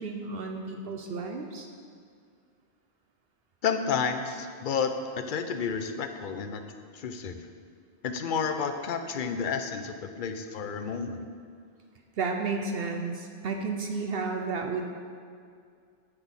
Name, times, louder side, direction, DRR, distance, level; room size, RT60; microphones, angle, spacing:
voice 1, 0.0-1.7 12.2-14.9, right 4 dB, 65° right, 3 dB, 0.9 m, -32 dB
voice 2, 3.6-4.9 5.2-6.6 6.9-7.4 8.0-11.3, left 6 dB, 55° left, 7 dB, 0.7 m, -31 dB
9.9 x 4.1 x 7.2 m, 2.2 s
omnidirectional pair, 1.1 m